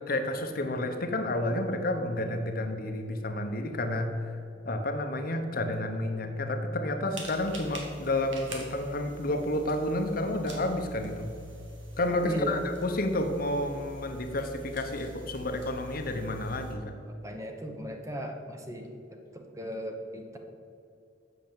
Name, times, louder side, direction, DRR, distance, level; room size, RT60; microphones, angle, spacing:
voice 1, 0.1-4.4 4.6-11.3 12.0-17.0, left 1 dB, 50° left, 6 dB, 0.8 m, -30 dB
sound 1, 7.1-16.7, right 1 dB, 80° right, 1.8 m, -45 dB
voice 2, 12.2-12.6 17.2-18.9 19.3-20.4, equal, 15° right, 3 dB, 0.9 m, -36 dB
7.7 x 6.5 x 7.2 m, 2.6 s
head